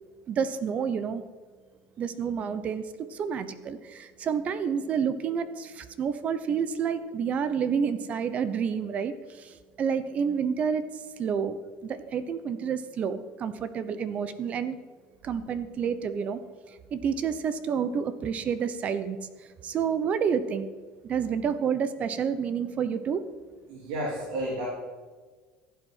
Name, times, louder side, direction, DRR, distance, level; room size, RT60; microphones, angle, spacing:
voice 1, 0.3-1.2 2.0-2.8 3.1-10.8 11.2-14.8 15.2-16.4 16.9-19.2 19.6-20.7 21.0-23.2, right 7 dB, 45° right, 12 dB, 0.9 m, -29 dB
voice 2, 23.7-24.7, right 1 dB, 75° right, -4 dB, 3.5 m, -31 dB
15.0 x 8.3 x 5.7 m, 1.4 s
supercardioid pair, 105°, 3 cm